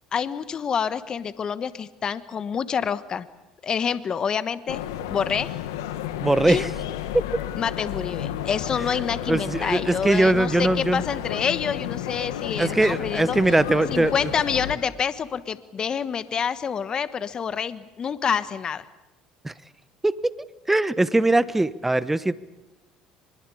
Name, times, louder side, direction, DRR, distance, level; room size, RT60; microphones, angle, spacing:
voice 1, 0.1-3.3 3.6-4.8 5.1-5.5 6.5-6.6 7.6-13.4 13.9-18.8, left 7 dB, 40° left, 14 dB, 1.2 m, -27 dB
sound 1, 4.7-14.8, left 11 dB, 85° left, 1.7 m, -32 dB
voice 2, 6.2-6.7 7.1-7.2 9.3-11.0 12.6-14.3 19.4-19.5 20.0-20.3 20.7-22.3, right 2 dB, 10° right, 16 dB, 1.2 m, -21 dB
24.0 x 21.5 x 8.5 m, 1.0 s
hypercardioid pair, 75°, 2 cm